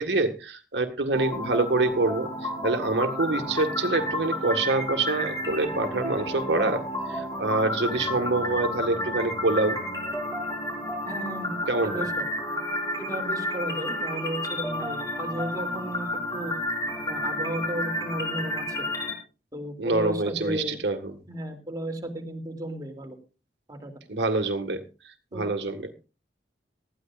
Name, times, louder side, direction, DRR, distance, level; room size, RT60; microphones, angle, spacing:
voice 1, 0.0-6.8 7.1-9.8 11.7-12.1 19.8-21.0 24.1-24.8 25.3-25.9, right 2 dB, 85° right, 7 dB, 1.7 m, -26 dB
sound 1, 1.1-19.1, left 1 dB, 20° left, 4.4 m, -31 dB
voice 2, 11.1-12.3 12.9-16.5 17.1-18.9 19.5-20.8 21.3-23.2 23.7-23.9 25.3-25.5, right 1 dB, 20° right, 2 dB, 3.0 m, -34 dB
19.5 x 14.0 x 2.5 m, 0.32 s
head